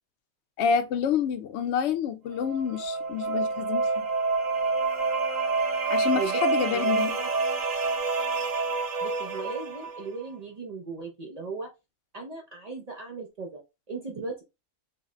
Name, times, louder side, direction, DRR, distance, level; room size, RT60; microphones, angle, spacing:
voice 1, 0.6-4.1 5.9-7.1, left 7 dB, 65° left, 0.7 m, -28 dB
sound 1, 2.3-10.1, right 4 dB, 65° right, 1.2 m, -28 dB
voice 2, 6.1-7.3 9.0-11.7 12.1-13.6 13.9-14.4, right 4 dB, 85° right, 0.3 m, -37 dB
3.9 x 2.1 x 3.6 m
omnidirectional pair, 1.5 m